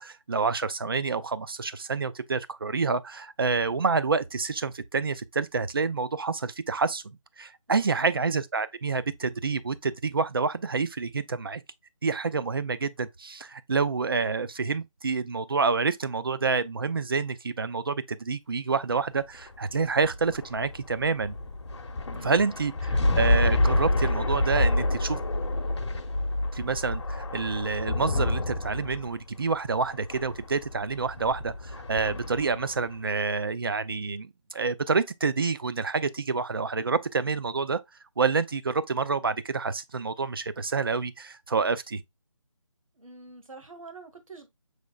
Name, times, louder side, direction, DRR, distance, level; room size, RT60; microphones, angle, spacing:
voice 1, 0.0-11.6 12.0-21.4 22.2-25.2 26.5-37.8 38.2-42.0, right 4 dB, 45° right, 0.4 m, -28 dB
voice 2, 7.7-8.0 22.1-22.8 42.9-44.5, right 3 dB, 80° right, 1.4 m, -47 dB
sound 1, 19.3-32.9, left 2 dB, 55° left, 0.9 m, -28 dB
6.3 x 3.1 x 2.2 m
figure-of-eight pair, 170°, 17 cm